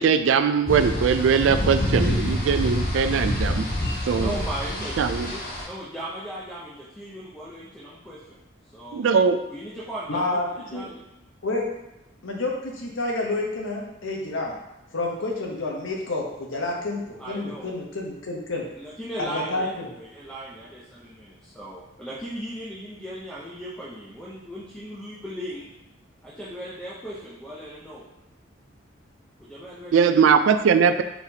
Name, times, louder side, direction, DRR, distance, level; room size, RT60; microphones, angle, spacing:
voice 1, 0.0-3.7 4.1-4.3 5.0-5.3 8.9-9.4 29.9-31.0, right 6 dB, 80° right, 9 dB, 0.3 m, -20 dB
sound 1, 0.7-5.6, left 1 dB, 45° left, 1.1 m, -26 dB
voice 2, 4.1-8.4 8.6-9.1 9.5-11.0 17.2-17.7 18.7-25.7 26.2-28.1 29.4-30.2, right 1 dB, 5° left, -7 dB, 0.6 m, -37 dB
voice 3, 10.1-10.4 10.7-10.9 11.4-11.7 12.2-14.5 14.9-18.6 19.2-19.8, left 2 dB, 85° left, 0 dB, 0.9 m, -29 dB
4.6 x 3.9 x 2.8 m, 0.92 s
head